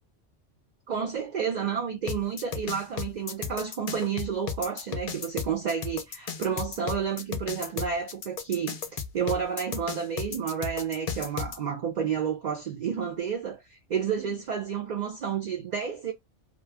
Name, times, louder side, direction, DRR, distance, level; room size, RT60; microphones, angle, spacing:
voice 1, 0.9-8.8 9.1-16.1, right 7 dB, 60° right, 0.4 m, -30 dB
sound 1, 2.1-11.6, left 6 dB, 60° left, 0.4 m, -34 dB
2.2 x 2.2 x 3.3 m
omnidirectional pair, 1.2 m